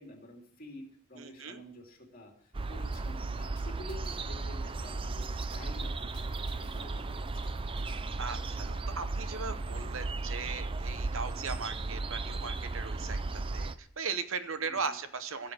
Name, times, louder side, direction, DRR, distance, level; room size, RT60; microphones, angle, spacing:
voice 1, 0.0-7.5 11.3-11.6 14.7-15.0, left 1 dB, 40° left, 1 dB, 2.9 m, -50 dB
voice 2, 1.2-1.6 8.2-13.2 13.5-15.5, right 5 dB, 65° right, 10 dB, 0.9 m, -38 dB
sound 1, 2.5-13.8, right 3 dB, 25° right, 0.4 m, -35 dB
sound 2, 2.9-5.0 5.5-8.0, left 3 dB, 20° left, 1.7 m, -58 dB
15.5 x 7.6 x 6.3 m, 0.62 s
head